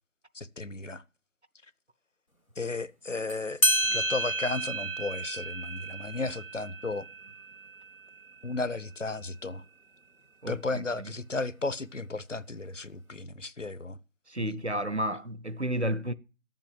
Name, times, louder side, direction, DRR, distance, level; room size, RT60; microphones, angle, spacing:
voice 1, 0.3-1.0 2.6-7.1 8.4-9.6 10.5-14.0 14.4-14.6, left 3 dB, 65° left, 0.8 m, -34 dB
sound 1, 3.3-3.4 3.6-8.7, right 1 dB, 90° left, 2.0 m, -31 dB
voice 2, 10.4-11.1 14.3-16.1, right 1 dB, 55° right, 0.7 m, -32 dB
12.5 x 7.5 x 7.6 m
figure-of-eight pair, 180°, 41 cm